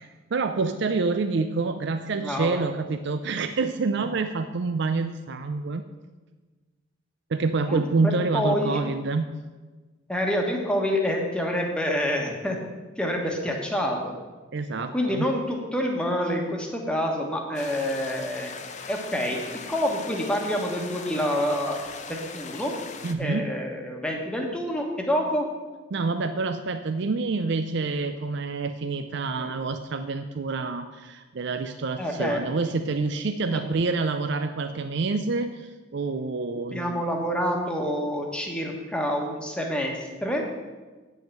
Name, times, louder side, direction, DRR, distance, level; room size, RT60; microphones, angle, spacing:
voice 1, 0.0-5.8 7.3-9.4 13.2-13.6 14.5-15.3 23.0-23.6 25.9-37.0, right 3 dB, 60° right, 8 dB, 0.5 m, -27 dB
voice 2, 2.2-2.6 7.7-8.8 10.1-12.6 13.0-14.1 14.9-18.5 18.9-21.8 22.1-22.7 23.2-25.5 29.4-29.5 32.0-32.4 33.5-33.6 36.7-40.4, equal, 5° left, 0 dB, 1.3 m, -27 dB
sound 1, 17.5-23.1, left 5 dB, 35° left, 0.7 m, -39 dB
9.0 x 5.6 x 7.6 m, 1.3 s
head